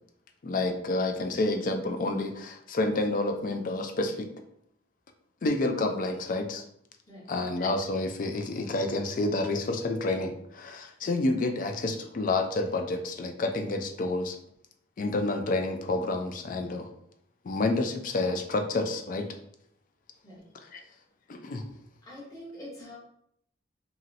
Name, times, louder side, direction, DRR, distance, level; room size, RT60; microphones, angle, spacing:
voice 1, 0.4-4.3 5.4-6.6 7.3-14.4 15.0-16.9 17.4-19.3 20.7-20.8 21.3-21.7, left 2 dB, 45° left, 6 dB, 0.3 m, -29 dB
voice 2, 22.0-23.0, left 1 dB, 20° left, -7 dB, 0.9 m, -44 dB
2.9 x 2.7 x 2.6 m, 0.72 s
head